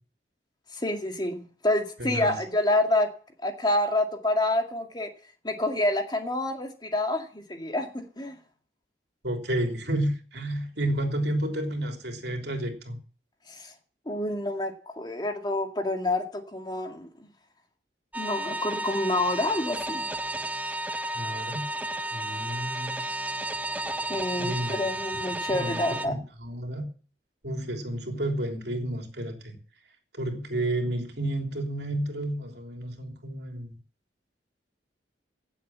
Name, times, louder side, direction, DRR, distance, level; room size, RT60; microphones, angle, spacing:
voice 1, 0.7-3.1 3.4-5.1 5.4-7.9 8.2-8.4 13.5-13.7 14.1-17.1 18.2-20.0 24.1-26.2, left 1 dB, 25° left, 5 dB, 2.1 m, -28 dB
voice 2, 2.0-2.4 9.2-13.0 21.1-21.7 22.1-23.0 24.4-24.9 25.5-26.8 27.4-29.6 30.1-33.7, right 1 dB, 65° right, 4 dB, 3.3 m, -31 dB
sound 1, 18.1-26.1, right 1 dB, 10° right, 0.9 m, -32 dB
17.0 x 7.6 x 7.5 m, 0.41 s
head